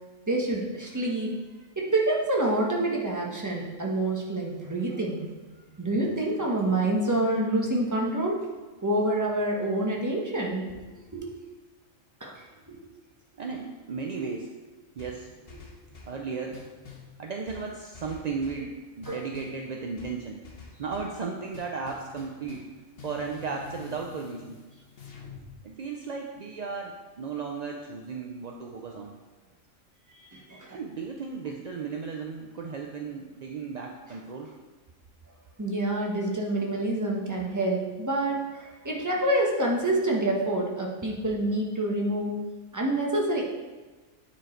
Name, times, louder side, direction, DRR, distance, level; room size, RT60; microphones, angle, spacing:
voice 1, 0.3-1.4 1.8-5.3 5.8-8.4 8.8-10.8 11.1-11.3 12.2-12.8 19.1-19.2 30.3-30.8 35.6-42.4 42.7-43.5, right 1 dB, 15° right, -2 dB, 1.1 m, -27 dB
voice 2, 5.5-6.5 13.4-14.5 15.0-15.5 15.9-16.6 17.2-20.4 20.7-22.7 23.0-24.6 25.6-29.2 30.7-34.5, right 5 dB, 50° right, 1 dB, 0.5 m, -35 dB
sound 1, 15.0-16.2 16.5-17.1 17.5-18.7 19.0-19.6 20.0-21.2 21.5-22.7 23.0-25.5, left 5 dB, 50° left, 1.3 m, -47 dB
9.2 x 4.5 x 4.4 m, 1.3 s
omnidirectional pair, 1.3 m